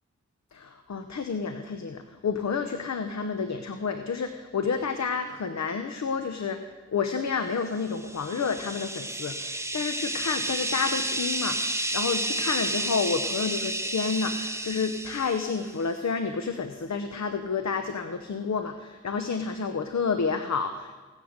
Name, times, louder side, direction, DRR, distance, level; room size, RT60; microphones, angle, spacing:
voice 1, 0.5-20.9, left 5 dB, 70° left, 8 dB, 0.9 m, -30 dB
sound 1, 7.9-15.7, right 1 dB, 10° right, 0.9 m, -31 dB
16.5 x 10.5 x 6.6 m, 1.5 s
wide cardioid pair, 65°, 29 cm